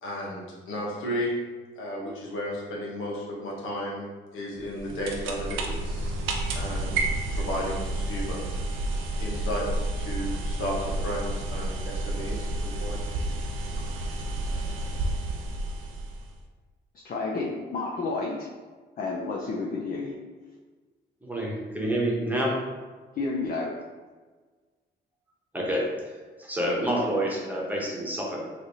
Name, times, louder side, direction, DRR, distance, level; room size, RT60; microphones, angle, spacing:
voice 1, 0.0-1.3 1.8-4.0 4.3-6.1 6.5-6.9 7.3-8.4 9.2-13.0, equal, 90° left, -3 dB, 1.1 m, -33 dB
sound 1, 4.6-16.4, right 2 dB, 85° right, 0.6 m, -30 dB
voice 2, 17.0-18.5 19.0-20.1 23.1-23.7, left 3 dB, 45° left, -2 dB, 0.6 m, -30 dB
voice 3, 21.2-22.6 25.5-28.5, right 1 dB, 10° right, -3 dB, 1.0 m, -28 dB
3.2 x 2.6 x 4.0 m, 1.4 s
cardioid pair, 90°, 20 cm